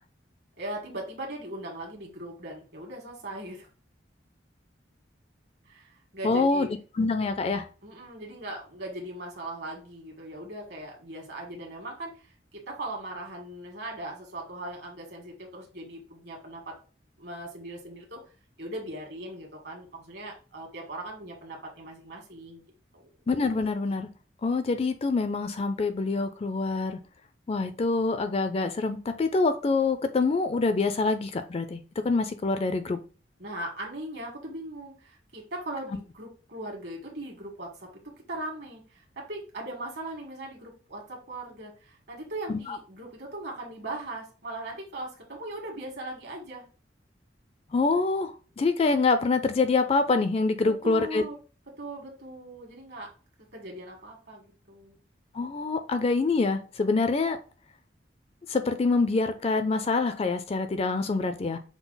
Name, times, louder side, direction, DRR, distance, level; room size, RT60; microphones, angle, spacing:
voice 1, 0.6-3.7 5.7-6.7 7.8-12.3 12.5-16.8 17.2-18.2 18.6-22.6 22.9-23.1 33.4-46.7 50.6-51.4 51.7-53.1 53.5-55.0, right 1 dB, 65° right, 0 dB, 1.6 m, -39 dB
voice 2, 6.2-6.7 7.0-7.7 23.3-24.1 24.4-27.0 27.5-33.0 42.5-42.8 47.7-51.2 55.3-57.4 58.5-61.6, left 3 dB, 35° left, 9 dB, 0.4 m, -25 dB
6.0 x 2.0 x 3.9 m, 0.36 s
head